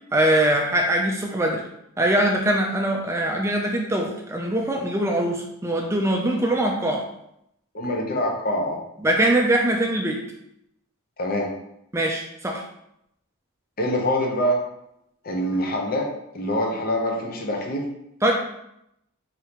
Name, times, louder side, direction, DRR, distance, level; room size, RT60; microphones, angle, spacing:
voice 1, 0.1-1.6 2.0-7.0 9.0-10.2 11.9-12.6 18.2-18.3, right 1 dB, 15° right, 1 dB, 0.4 m, -22 dB
voice 2, 7.7-8.8 11.2-11.5 13.8-14.6 15.2-16.1 16.3-17.9, equal, 45° left, 1 dB, 0.8 m, -24 dB
5.0 x 2.8 x 2.9 m, 0.79 s
head